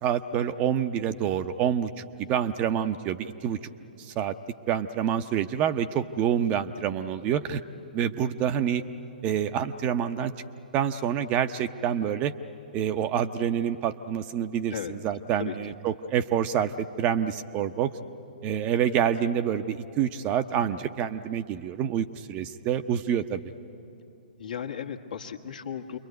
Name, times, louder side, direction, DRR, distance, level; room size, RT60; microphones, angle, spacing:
voice 1, 0.0-1.9 2.2-3.6 4.0-4.3 4.7-7.6 7.9-8.8 9.2-10.3 10.7-12.3 12.7-17.9 18.4-23.4, right 9 dB, 25° right, 10 dB, 0.7 m, -27 dB
voice 2, 24.4-26.0, left 8 dB, 60° left, 5 dB, 1.6 m, -35 dB
28.5 x 22.5 x 9.3 m, 2.9 s
figure-of-eight pair, 120°, 5 cm